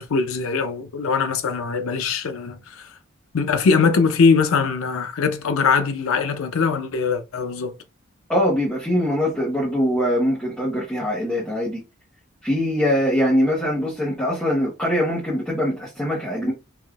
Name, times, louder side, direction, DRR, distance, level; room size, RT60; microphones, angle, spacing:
voice 1, 0.0-2.9 3.3-7.7, left 5 dB, 90° left, 0.5 m, -21 dB
voice 2, 8.3-11.8 12.4-16.5, equal, 5° left, 0.9 m, -22 dB
3.5 x 2.6 x 2.3 m
head